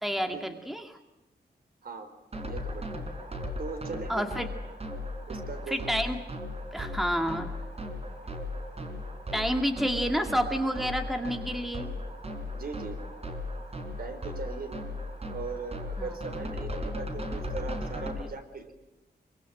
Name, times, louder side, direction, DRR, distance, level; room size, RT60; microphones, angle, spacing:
voice 1, 0.0-0.9 4.1-4.5 5.7-6.2 6.7-7.6 9.3-11.9 16.0-16.1 18.0-18.3, equal, ahead, 5 dB, 2.1 m, -29 dB
sound 1, 2.3-18.2, left 1 dB, 35° right, 4.3 m, -37 dB
voice 2, 2.4-3.1 3.6-4.3 5.3-5.9 12.5-13.0 14.0-14.8 15.3-18.7, right 4 dB, 60° right, 7 dB, 4.5 m, -39 dB
26.5 x 24.5 x 7.7 m, 0.99 s
wide cardioid pair, 170°, 17 cm